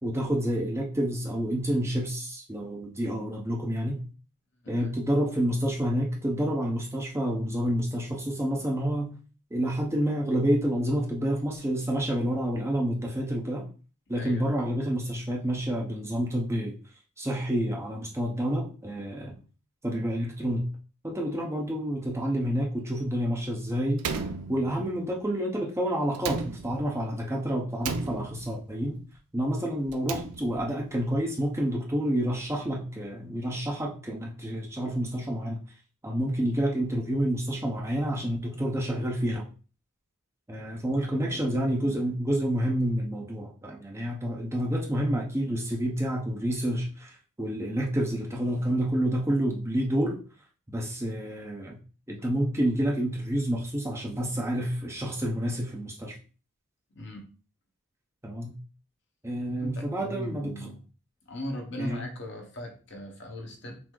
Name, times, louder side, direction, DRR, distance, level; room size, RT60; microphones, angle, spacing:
voice 1, 0.0-4.0 4.7-9.1 9.5-13.7 14.1-16.8 17.2-19.4 19.8-20.7 21.0-24.0 24.5-29.0 29.3-35.6 36.0-39.5 40.5-50.2 50.7-51.8 52.1-56.1 58.2-58.6 59.2-60.7 61.8-62.1, equal, 10° right, -1 dB, 0.6 m, -29 dB
voice 2, 14.1-14.5 41.0-42.1 57.0-57.2 59.6-60.8 61.3-63.8, left 1 dB, 50° left, 2 dB, 0.9 m, -39 dB
Slam, 24.0-25.1 26.1-27.1 27.8-28.7 29.8-30.8, right 5 dB, 80° right, 0.5 m, -35 dB
5.9 x 2.0 x 3.8 m, 0.37 s
head